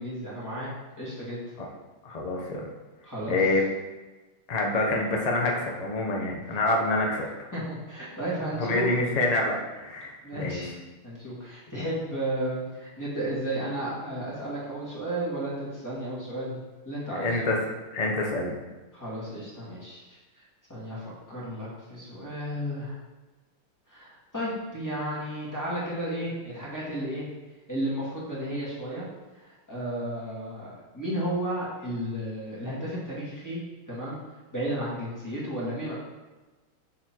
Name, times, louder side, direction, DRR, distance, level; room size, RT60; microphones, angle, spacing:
voice 1, 0.0-1.4 3.0-3.4 7.5-7.6 7.9-8.9 10.2-10.7 11.0-16.6 16.8-17.4 18.9-22.9 23.9-27.2 27.7-29.1 29.4-34.2 34.5-35.9, right 1 dB, 10° left, -8 dB, 2.0 m, -33 dB
voice 2, 2.0-2.6 3.3-3.6 4.5-7.3 8.6-10.6 17.1-17.6 17.9-18.5, left 2 dB, 60° left, -1 dB, 0.4 m, -26 dB
7.2 x 4.4 x 4.5 m, 1.2 s
omnidirectional pair, 2.3 m